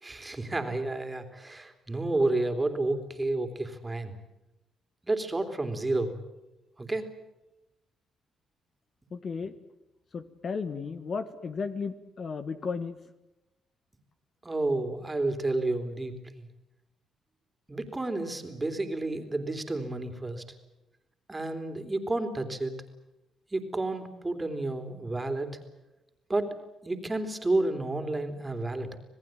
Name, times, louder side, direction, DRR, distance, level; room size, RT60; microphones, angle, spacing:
voice 1, 0.0-4.1 5.0-6.1 6.8-7.0 14.4-16.5 17.7-20.4 21.3-22.7 23.5-25.5 26.3-26.6 26.8-29.0, right 2 dB, 20° right, 7 dB, 3.3 m, -30 dB
voice 2, 9.1-9.5 10.1-13.0, left 5 dB, 45° left, 10 dB, 1.5 m, -34 dB
27.0 x 18.5 x 9.2 m, 0.97 s
cardioid pair, 90°, 0 cm